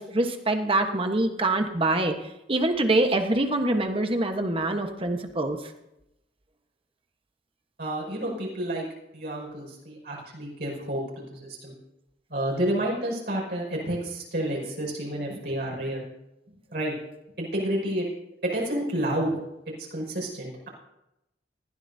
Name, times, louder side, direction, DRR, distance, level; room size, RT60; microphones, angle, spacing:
voice 1, 0.0-2.1 2.5-5.6, right 2 dB, 30° right, 5 dB, 1.2 m, -24 dB
voice 2, 7.8-8.9 9.1-11.8 12.3-16.1 16.7-16.9 17.4-18.1 18.4-19.4 19.9-20.7, right 1 dB, 65° right, -3 dB, 5.7 m, -30 dB
20.0 x 15.5 x 2.8 m, 0.90 s
head